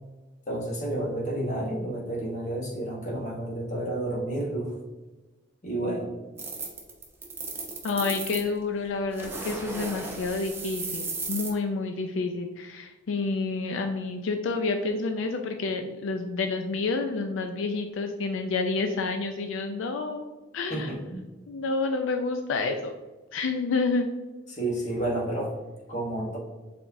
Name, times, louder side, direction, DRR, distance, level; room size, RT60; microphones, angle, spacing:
voice 1, 0.5-4.7 5.6-6.2 20.7-21.3 24.5-25.5 25.9-26.4, right 1 dB, 40° left, -2 dB, 1.1 m, -30 dB
sound 1, 6.4-8.5 9.1-11.5, right 3 dB, 10° right, 0.6 m, -35 dB
voice 2, 7.8-20.3 20.5-20.9 21.5-22.9 23.3-24.1, left 3 dB, 85° left, 6 dB, 0.4 m, -29 dB
4.7 x 3.5 x 2.6 m, 1.2 s
head